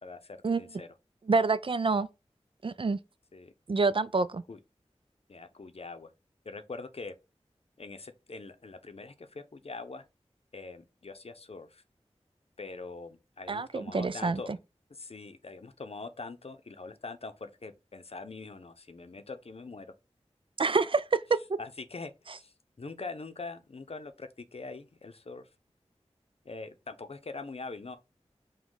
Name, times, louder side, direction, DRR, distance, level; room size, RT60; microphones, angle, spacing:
voice 1, 0.0-0.9 3.3-3.5 4.5-4.6 5.3-6.1 6.4-7.2 7.8-10.0 10.5-11.8 12.6-14.5 14.9-19.9 21.6-25.5 26.4-28.0, left 3 dB, 60° left, 0.6 m, -43 dB
voice 2, 1.3-2.1 2.6-3.0 3.7-4.4 13.5-14.4 20.6-21.4, right 4 dB, 50° right, 0.4 m, -27 dB
5.0 x 2.3 x 3.8 m
wide cardioid pair, 40°, 12 cm